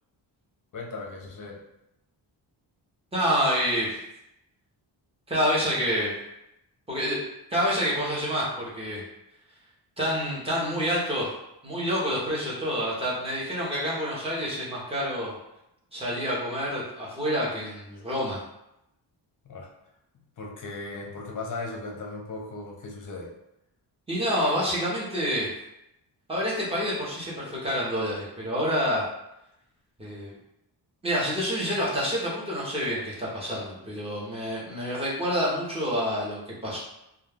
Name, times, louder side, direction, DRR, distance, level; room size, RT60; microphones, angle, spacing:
voice 1, 0.7-1.6 19.4-19.7 20.4-23.3, left 3 dB, 45° left, -1 dB, 0.6 m, -37 dB
voice 2, 3.1-4.0 5.3-6.1 6.9-7.2 7.5-9.0 10.0-11.3 11.6-15.4 15.9-18.4 24.1-25.5 26.3-29.0 30.0-30.3 31.0-36.8, equal, 15° right, -6 dB, 0.7 m, -28 dB
2.2 x 2.2 x 3.3 m, 0.84 s
wide cardioid pair, 175°, 44 cm